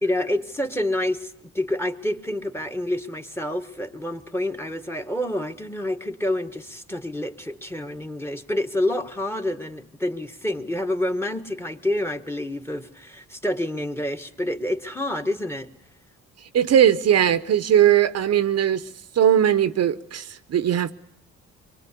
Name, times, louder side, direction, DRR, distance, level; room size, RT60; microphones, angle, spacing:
voice 1, 0.0-15.7, left 1 dB, 10° left, 1.5 m, -28 dB
voice 2, 16.5-18.9 19.1-20.9, right 10 dB, 55° right, 0.9 m, -19 dB
24.5 x 23.0 x 8.4 m
cardioid pair, 90°, 30 cm